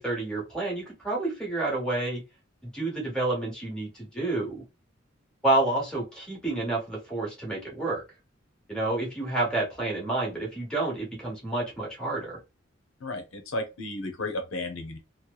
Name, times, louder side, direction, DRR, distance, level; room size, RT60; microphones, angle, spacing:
voice 1, 0.0-2.2 2.6-4.6 5.4-8.0 8.7-12.4, right 2 dB, 5° left, 1.2 m, -29 dB
voice 2, 13.0-15.0, left 2 dB, 85° left, 0.6 m, -33 dB
2.9 x 2.1 x 2.2 m
head